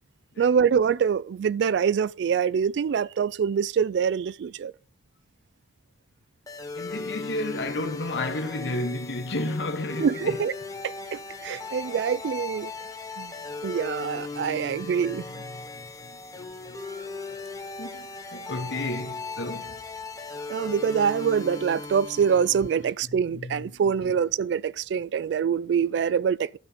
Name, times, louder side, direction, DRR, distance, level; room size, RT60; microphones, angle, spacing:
voice 1, 0.4-4.7 10.0-10.5 10.8-12.7 13.2-13.3 13.6-15.3 20.5-26.6, right 7 dB, 70° right, 0.3 m, -25 dB
sound 1, 6.5-22.9, left 4 dB, 20° left, 1.1 m, -37 dB
voice 2, 6.7-10.4 11.4-11.6 14.3-17.1 17.8-19.8 22.6-22.7 23.0-23.8, left 2 dB, 75° left, 1.1 m, -33 dB
12.0 x 4.2 x 5.2 m
head